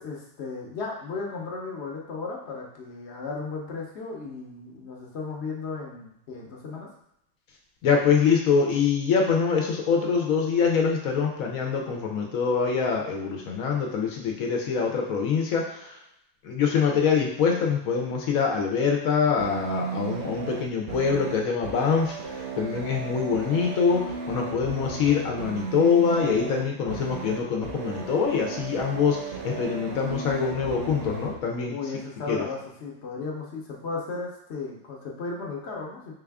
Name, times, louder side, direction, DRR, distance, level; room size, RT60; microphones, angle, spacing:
voice 1, 0.0-6.9 31.7-36.1, left 4 dB, 55° left, -1 dB, 1.0 m, -35 dB
voice 2, 7.8-15.9 16.4-31.7 32.3-32.5, left 6 dB, 80° left, 1 dB, 1.1 m, -24 dB
sound 1, 19.4-31.4, right 4 dB, 65° right, 0.5 m, -35 dB
3.9 x 2.4 x 3.4 m, 0.78 s
omnidirectional pair, 1.4 m